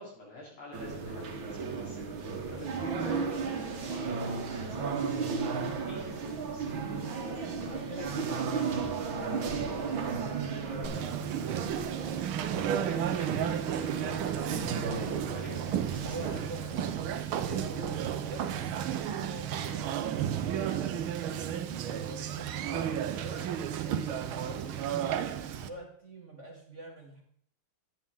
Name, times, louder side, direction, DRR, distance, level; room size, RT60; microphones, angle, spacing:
voice 1, 0.0-2.2 2.5-3.3 3.8-5.0 5.8-7.7 12.1-12.2 12.9-16.9, left 2 dB, 75° left, -4 dB, 4.3 m, -48 dB
sound 1, 0.7-16.3, right 5 dB, 70° right, 1.8 m, -35 dB
voice 2, 7.6-12.1 15.4-21.4 21.8-27.2, right 2 dB, 40° right, 1 dB, 1.6 m, -46 dB
Conversation, 10.8-25.7, right 9 dB, 85° right, 1.5 m, -33 dB
11.0 x 8.6 x 3.6 m, 0.63 s
omnidirectional pair, 2.3 m